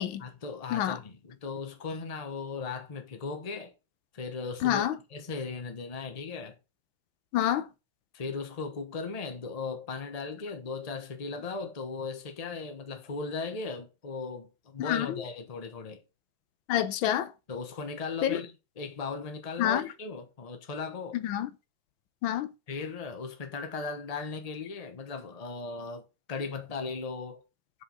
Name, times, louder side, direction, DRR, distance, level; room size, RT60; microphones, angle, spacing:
voice 1, 0.2-3.7 4.1-4.8 5.1-6.6 8.1-16.0 17.5-21.2 22.7-26.0 26.3-27.4, left 4 dB, 25° left, 0.9 m, -37 dB
voice 2, 4.6-5.0 7.3-7.7 14.8-15.1 16.7-17.3 18.2-18.4 19.6-19.8 21.2-21.5 22.2-22.5, left 12 dB, 85° left, 1.4 m, -27 dB
5.2 x 4.9 x 5.6 m
omnidirectional pair, 2.1 m